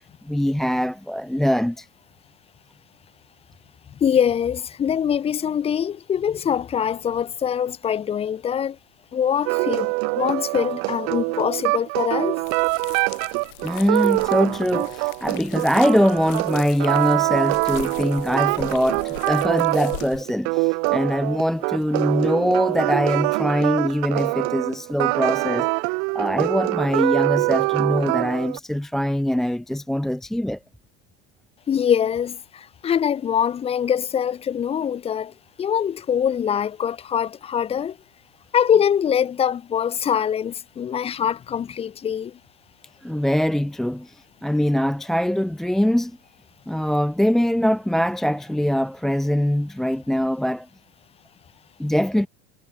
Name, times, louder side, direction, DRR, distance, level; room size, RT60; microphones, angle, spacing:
voice 1, 0.2-1.9 13.6-30.6 43.0-46.2 46.7-50.7 51.8-52.3, equal, ahead, 0.6 m, -23 dB
voice 2, 4.0-8.8 9.1-12.4 31.7-38.0 38.5-42.4, left 8 dB, 20° left, 2.4 m, -23 dB
sound 1, 9.5-28.6, right 40 dB or more, 40° right, 0.8 m, -24 dB
sound 2, 12.4-20.2, left 31 dB, 50° left, 5.6 m, -41 dB
supercardioid pair, 170°, 33 cm